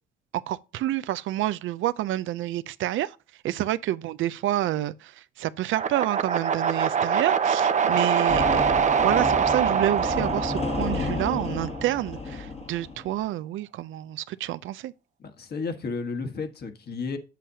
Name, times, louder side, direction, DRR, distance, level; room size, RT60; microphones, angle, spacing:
voice 1, 0.3-3.2 3.4-8.7 8.9-14.9, right 14 dB, 80° right, 0.5 m, -28 dB
sound 1, 5.7-11.9, right 7 dB, 35° right, 0.8 m, -24 dB
sound 2, 8.3-13.1, left 4 dB, 30° left, 1.2 m, -32 dB
voice 2, 15.2-17.2, left 4 dB, 55° left, 1.5 m, -33 dB
8.3 x 7.6 x 2.8 m
cardioid pair, 90°, 20 cm